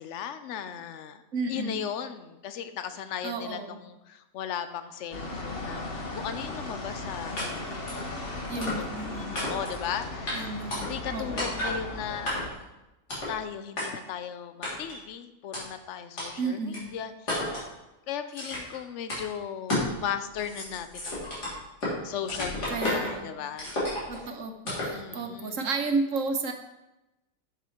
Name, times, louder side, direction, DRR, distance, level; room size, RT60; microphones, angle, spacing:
voice 1, 0.0-1.2 1.5-7.8 8.8-10.5 10.8-12.3 13.3-17.6 18.1-21.6 22.0-23.7 24.9-25.6, left 8 dB, 55° left, 10 dB, 0.9 m, -37 dB
voice 2, 1.3-1.8 3.2-3.8 8.5-9.4 10.3-11.6 16.4-16.8 22.7-23.3 24.1-26.5, right 3 dB, 55° right, 5 dB, 1.3 m, -32 dB
sound 1, 5.1-12.5, left 2 dB, 40° left, 1.4 m, -37 dB
sound 2, 7.4-7.5 7.9-8.1 8.6-9.0 9.3-9.8 10.3-10.4 10.7-11.1 11.4-11.8 12.3-12.6 13.1-13.3 13.8-13.9 14.6-15.0 15.5-15.6 16.2-16.3 16.7-16.8 17.3-17.7 18.3-18.8 19.1-19.2 19.7-19.9 20.3-22.0 22.3-23.2 23.6-24.2 24.7-25.0, left 1 dB, 75° left, 4.1 m, -31 dB
10.5 x 7.5 x 4.5 m, 0.98 s
omnidirectional pair, 1.7 m